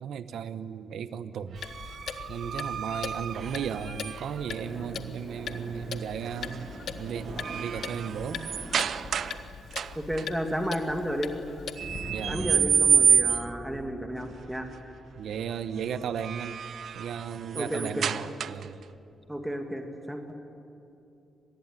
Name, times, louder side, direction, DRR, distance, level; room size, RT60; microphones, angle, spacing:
voice 1, 0.0-1.6 2.3-8.5 12.1-12.6 15.1-16.6 16.9-18.8, right 7 dB, 75° right, 13 dB, 1.0 m, -35 dB
Clock, 1.6-12.1, left 7 dB, 60° left, 1.2 m, -41 dB
sound 1, 1.6-4.5 6.3-6.6 7.0-9.4 9.7-10.3 11.8-13.7 16.0-18.8, right 7 dB, 55° right, 0.6 m, -28 dB
sound 2, 4.4-10.3 11.8-17.1, right 1 dB, 35° right, 3.2 m, -43 dB
voice 2, 10.1-11.3 12.3-14.7 17.5-18.1 19.3-20.2, equal, 5° right, 5 dB, 2.2 m, -32 dB
26.0 x 20.0 x 9.8 m, 2.8 s
wide cardioid pair, 160°, 0 cm